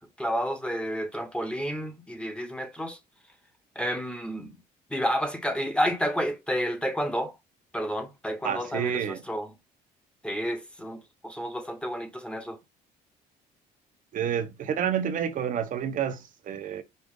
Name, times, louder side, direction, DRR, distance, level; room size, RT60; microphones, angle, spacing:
voice 1, 0.2-3.0 3.8-4.6 4.9-7.3 7.7-9.5 10.2-12.6, equal, 5° left, 0.9 m, -30 dB
voice 2, 8.4-9.2 14.1-16.8, right 8 dB, 50° right, 0.7 m, -29 dB
5.2 x 2.4 x 3.6 m
cardioid pair, 110°, 17 cm